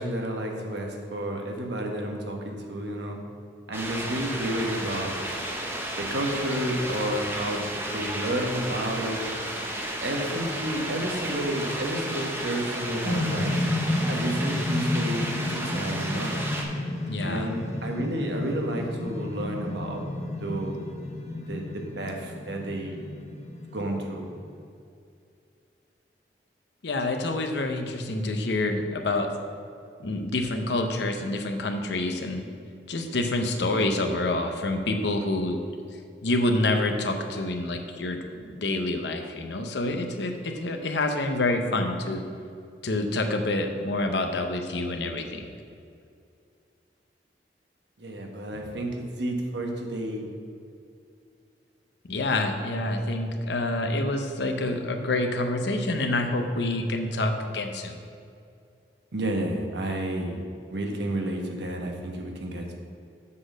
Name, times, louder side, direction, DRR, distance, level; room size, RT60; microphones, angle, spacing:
voice 1, 0.0-3.2 3.7-5.1 5.9-9.2 10.0-13.6 14.1-16.3 17.2-20.0 20.4-20.8 21.5-23.0 23.7-24.3 48.0-50.3 59.1-60.4 60.7-62.7, right 1 dB, 75° right, 2 dB, 1.1 m, -31 dB
sound 1, 3.7-16.6, right 1 dB, 15° right, 0.8 m, -33 dB
sound 2, 13.0-24.5, left 1 dB, 40° left, 0.8 m, -32 dB
voice 2, 17.1-17.5 26.8-29.3 30.0-32.4 32.9-35.6 36.2-42.2 42.8-45.5 52.1-58.0, left 2 dB, 75° left, 5 dB, 0.7 m, -27 dB
7.6 x 4.1 x 6.3 m, 2.5 s
head